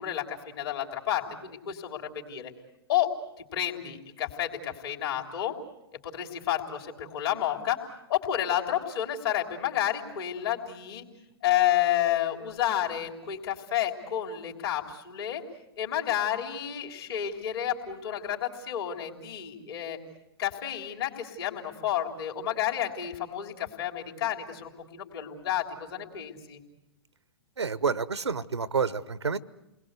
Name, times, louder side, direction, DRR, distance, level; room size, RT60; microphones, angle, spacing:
voice 1, 0.0-2.5 2.9-3.1 3.4-5.5 6.0-7.8 8.1-11.0 11.4-15.4 15.8-20.0 20.4-26.6, left 11 dB, 60° left, 2 dB, 3.6 m, -30 dB
voice 2, 27.6-29.4, right 5 dB, 90° right, 19 dB, 0.9 m, -29 dB
29.5 x 20.5 x 8.2 m, 0.92 s
figure-of-eight pair, 115°, 14 cm